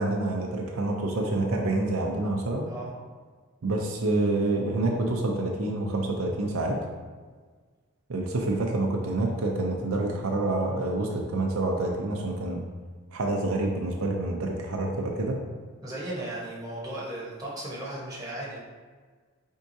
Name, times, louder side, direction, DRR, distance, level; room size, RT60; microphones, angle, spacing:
voice 1, 0.0-2.7 3.6-6.8 8.1-12.6 13.1-15.4, right 2 dB, 80° right, 0 dB, 0.5 m, -27 dB
voice 2, 2.6-2.9 15.8-18.6, right 1 dB, 15° right, -6 dB, 1.0 m, -36 dB
4.6 x 3.6 x 2.7 m, 1.5 s
head